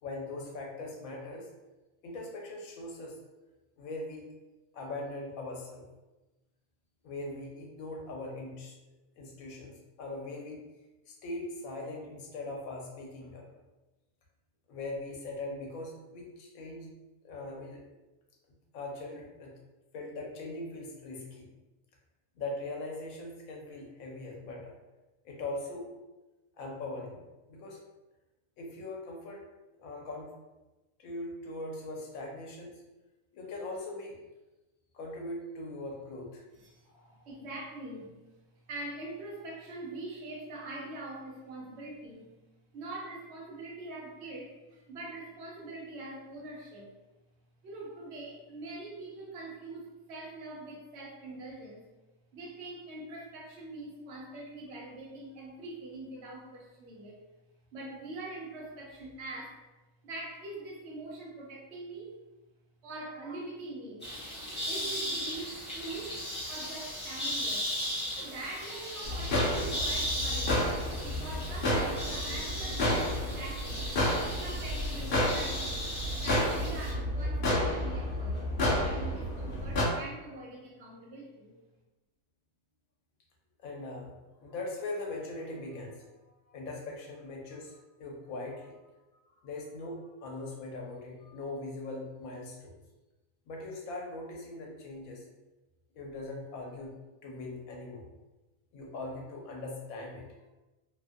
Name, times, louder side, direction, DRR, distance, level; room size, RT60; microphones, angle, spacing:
voice 1, 0.0-1.5 2.0-3.1 3.8-4.2 4.7-5.9 7.0-8.8 9.2-10.6 11.1-13.4 14.7-16.9 17.2-17.8 18.7-19.5 19.9-21.5 22.4-24.7 25.2-25.8 26.6-27.2 27.5-27.8 28.6-29.4 29.8-30.3 31.0-32.8 33.3-34.2 34.9-36.4 36.8-37.3 83.6-88.9 89.3-92.8 93.5-95.2 95.9-98.1 98.7-100.3, left 2 dB, 75° left, 0 dB, 1.1 m, -41 dB
voice 2, 37.1-38.2 38.7-42.3 42.7-46.9 47.6-51.9 52.3-57.2 57.7-59.6 60.0-62.2 62.8-66.2 66.5-67.7 68.2-70.7 71.0-73.9 74.4-75.7 76.1-81.6, right 2 dB, 60° right, -2 dB, 0.9 m, -43 dB
sound 1, 64.0-76.9, equal, 10° left, 0.9 m, -37 dB
sound 2, 69.0-79.8, left 1 dB, 55° left, 0.6 m, -31 dB
2.8 x 2.4 x 2.5 m, 1.1 s
omnidirectional pair, 1.5 m